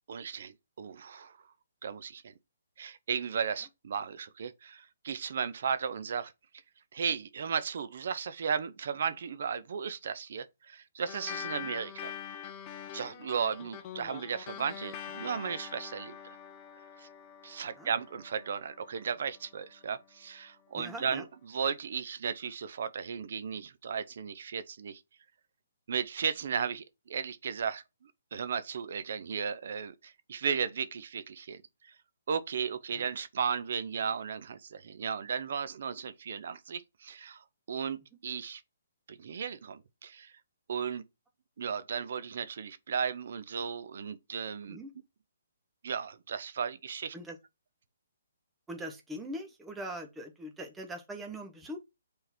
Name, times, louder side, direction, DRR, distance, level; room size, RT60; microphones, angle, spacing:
voice 1, 0.1-1.4 1.8-2.3 2.8-6.3 6.9-12.1 12.9-16.2 17.0-17.1 17.4-25.0 25.9-31.9 32.3-38.6 39.1-40.3 40.7-41.0 41.6-44.8 45.8-47.2, right 6 dB, 60° right, 0.8 m, -35 dB
sound 1, 11.1-19.9, left 9 dB, 30° left, 0.8 m, -44 dB
voice 2, 20.7-21.2 33.0-33.1 44.7-44.9 47.1-47.4 48.7-51.8, right 1 dB, 10° right, 1.1 m, -41 dB
6.8 x 3.9 x 4.4 m
hypercardioid pair, 145°, 0 cm